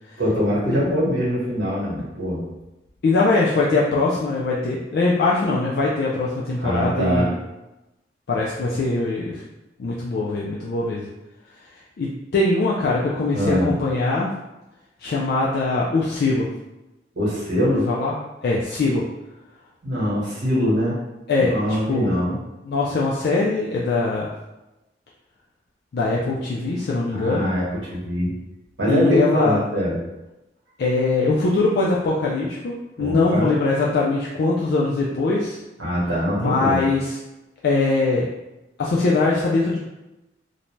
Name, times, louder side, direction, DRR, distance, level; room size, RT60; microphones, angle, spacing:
voice 1, 0.2-2.4 6.6-7.3 13.3-13.7 17.1-17.9 19.8-21.0 21.3-22.4 27.1-28.3 28.8-30.0 33.0-33.5 35.8-36.8, equal, 80° right, -6 dB, 1.1 m, -23 dB
voice 2, 3.0-7.3 8.3-9.4 9.8-11.1 12.0-14.3 15.0-16.5 17.6-18.2 18.4-19.0 21.3-22.2 22.6-24.3 25.9-27.5 28.9-29.6 30.8-35.6 36.4-37.1 37.6-38.3 38.8-39.8, left 3 dB, 55° left, -4 dB, 0.3 m, -22 dB
2.6 x 2.1 x 3.0 m, 1.0 s
head